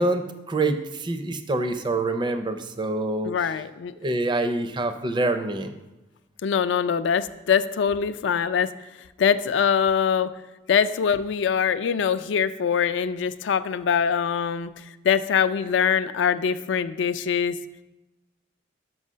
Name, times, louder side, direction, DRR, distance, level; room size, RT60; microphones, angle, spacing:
voice 1, 0.0-3.3 4.0-5.7, right 2 dB, 25° right, 9 dB, 0.4 m, -26 dB
voice 2, 3.2-3.9 6.4-8.7 9.2-10.3 10.7-14.7 15.0-17.5, left 7 dB, 75° left, 13 dB, 0.3 m, -23 dB
6.2 x 5.6 x 5.4 m, 1.0 s
head